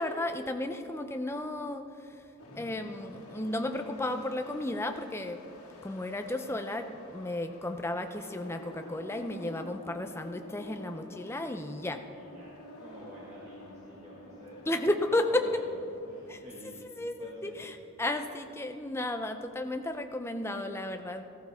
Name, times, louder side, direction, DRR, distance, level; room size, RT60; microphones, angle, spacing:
voice 1, 0.0-2.2 2.6-5.4 5.8-12.0 14.7-15.6 16.3-21.2, left 1 dB, 10° left, 7 dB, 0.5 m, -33 dB
sound 1, 2.4-16.4, left 1 dB, 90° left, 2.0 m, -49 dB
voice 2, 12.1-14.8 15.1-15.7 16.1-17.7, equal, 30° right, -7 dB, 1.8 m, -49 dB
14.5 x 14.0 x 3.5 m, 2.7 s
head